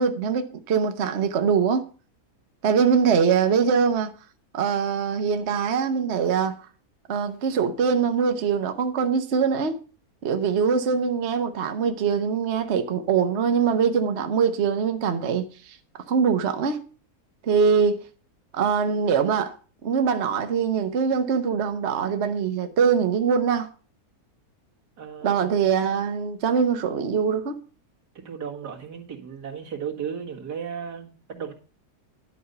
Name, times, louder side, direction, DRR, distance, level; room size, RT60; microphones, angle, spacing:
voice 1, 0.0-1.8 2.6-4.1 4.5-6.6 7.1-9.8 10.2-15.8 16.1-16.8 17.4-18.0 18.5-19.5 19.8-23.7 25.2-27.6, right 6 dB, 50° right, 1.1 m, -23 dB
voice 2, 25.0-25.5 28.1-31.5, right 7 dB, 80° right, 2.4 m, -35 dB
11.0 x 5.4 x 6.6 m
omnidirectional pair, 1.7 m